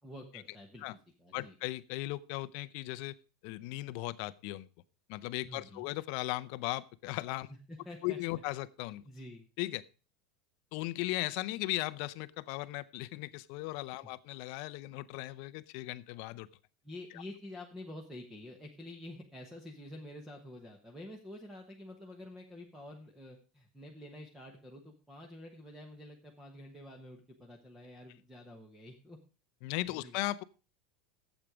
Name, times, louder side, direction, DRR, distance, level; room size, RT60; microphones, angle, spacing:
voice 1, 0.0-1.5 5.5-5.9 7.5-8.2 9.0-9.5 16.8-29.2 30.0-30.2, left 1 dB, 5° right, 2 dB, 1.1 m, -48 dB
voice 2, 1.3-3.2 3.4-4.7 5.1-7.5 8.0-9.0 9.6-9.8 10.7-16.5 29.6-30.4, left 18 dB, 45° left, 15 dB, 0.6 m, -37 dB
12.0 x 8.2 x 5.0 m, 0.35 s
supercardioid pair, 180°, 4 cm